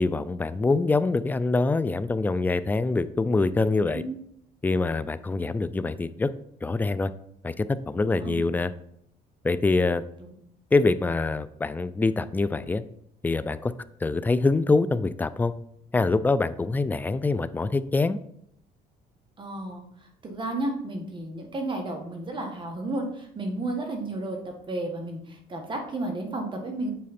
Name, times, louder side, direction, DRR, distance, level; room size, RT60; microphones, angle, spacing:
voice 1, 0.0-4.0 4.6-6.3 6.6-7.1 7.4-8.7 9.4-10.0 10.7-12.8 13.2-13.7 14.0-15.5 15.9-18.2, left 3 dB, 10° left, 14 dB, 0.3 m, -24 dB
voice 2, 19.4-19.8 20.2-26.9, right 2 dB, 30° right, 2 dB, 1.6 m, -32 dB
7.5 x 5.0 x 4.2 m, 0.72 s
cardioid pair, 110°, 17 cm